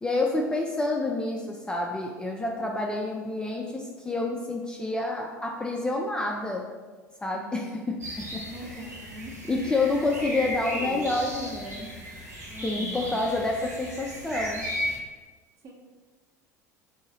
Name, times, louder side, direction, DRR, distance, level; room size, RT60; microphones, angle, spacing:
voice 1, 0.0-6.7 7.2-8.8 9.5-11.9 12.6-14.7, left 2 dB, 10° left, 0 dB, 0.4 m, -28 dB
voice 2, 7.3-7.7 8.5-9.4 10.7-11.2 11.6-11.8 12.5-13.2 15.6-15.7, right 1 dB, 35° right, 1 dB, 0.8 m, -41 dB
sound 1, 8.0-15.0, equal, 85° right, 1.1 m, -36 dB
3.7 x 2.7 x 4.2 m, 1.4 s
figure-of-eight pair, 70°, 9 cm